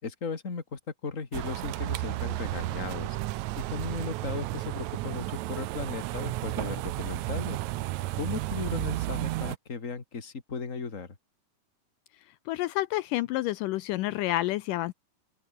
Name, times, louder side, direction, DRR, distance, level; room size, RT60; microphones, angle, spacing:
voice 1, 0.0-3.2 3.6-7.6 8.2-11.1, left 5 dB, 25° left, 2.6 m, -36 dB
sound 1, 1.3-9.6, right 17 dB, 80° right, 1.7 m, -33 dB
voice 2, 12.5-14.9, left 16 dB, 80° left, 2.2 m, -29 dB
open air
omnidirectional pair, 4.0 m